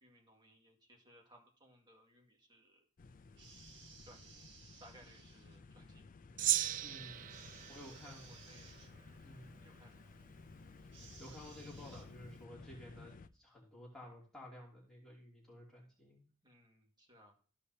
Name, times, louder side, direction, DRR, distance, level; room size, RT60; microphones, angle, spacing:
voice 1, 0.0-2.9 4.0-6.1 7.6-8.8 9.6-10.1 16.4-17.3, equal, 20° right, 0 dB, 2.0 m, -63 dB
sound 1, 3.0-13.3, left 3 dB, 40° left, 0.5 m, -56 dB
hard shhhhh, 3.3-5.6 7.3-8.9 10.9-12.0, right 5 dB, 55° right, 1.5 m, -59 dB
Gong, 6.4-9.0, right 13 dB, 35° right, 0.3 m, -37 dB
voice 2, 6.8-7.3 7.7-8.3 9.2-9.6 11.2-16.2, left 1 dB, ahead, -6 dB, 2.8 m, -53 dB
14.5 x 5.0 x 2.8 m, 0.41 s
head